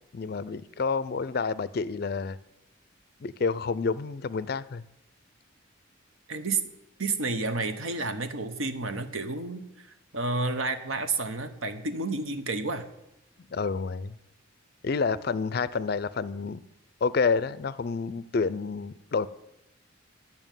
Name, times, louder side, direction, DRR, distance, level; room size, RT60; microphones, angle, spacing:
voice 1, 0.1-2.4 3.2-4.8 13.5-14.1 14.8-16.6 17.0-19.3, left 4 dB, 45° left, 17 dB, 0.4 m, -29 dB
voice 2, 6.3-6.6 7.0-12.9, right 3 dB, 75° right, 9 dB, 1.0 m, -30 dB
11.0 x 5.8 x 9.0 m, 0.85 s
head